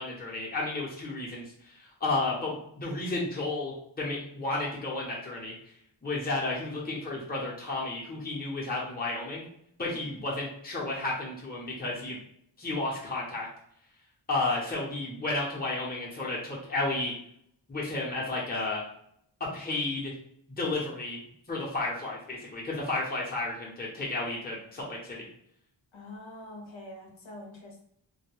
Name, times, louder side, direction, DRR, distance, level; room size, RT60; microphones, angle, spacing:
voice 1, 0.0-5.5 6.0-9.4 9.8-12.2 12.6-13.5 14.3-17.1 17.7-18.8 19.4-20.1 20.5-21.2 21.5-25.3, left 2 dB, 20° left, -5 dB, 0.8 m, -32 dB
voice 2, 25.9-27.8, left 1 dB, 75° left, 0 dB, 0.9 m, -45 dB
2.3 x 2.1 x 3.1 m, 0.70 s
wide cardioid pair, 55°, 47 cm